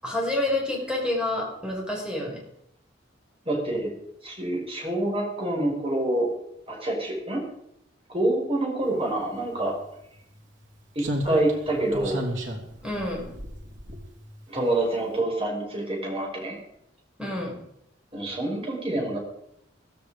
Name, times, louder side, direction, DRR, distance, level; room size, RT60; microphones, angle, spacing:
voice 1, 0.0-2.4 12.8-13.3 17.2-17.6, left 1 dB, 5° right, -2 dB, 5.9 m, -28 dB
voice 2, 3.5-3.9 4.2-6.3 6.7-7.4 8.1-9.8 10.9-12.3 14.5-16.6 18.1-19.2, right 1 dB, 30° right, 0 dB, 5.8 m, -27 dB
Slam, 9.6-9.7 11.0-14.5 14.8-15.0, equal, 85° right, 3.3 m, -33 dB
16.0 x 15.5 x 5.1 m, 0.77 s
head